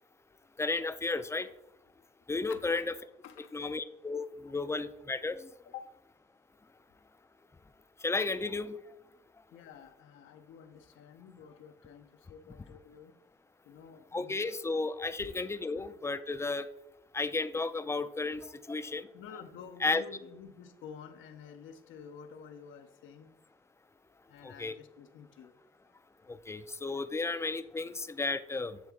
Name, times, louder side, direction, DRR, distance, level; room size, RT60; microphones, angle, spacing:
voice 1, 0.6-1.5 2.3-2.8 3.5-5.5 8.0-8.8 14.1-16.7 17.1-19.1 19.8-20.0 24.4-24.7 26.3-28.8, left 3 dB, 15° left, 0.4 m, -33 dB
voice 2, 3.2-3.7 5.6-6.0 9.5-13.1 13.7-14.5 19.1-23.3 24.3-25.5, left 7 dB, 80° left, 0.7 m, -50 dB
8.3 x 3.6 x 3.5 m
cardioid pair, 90°, 20 cm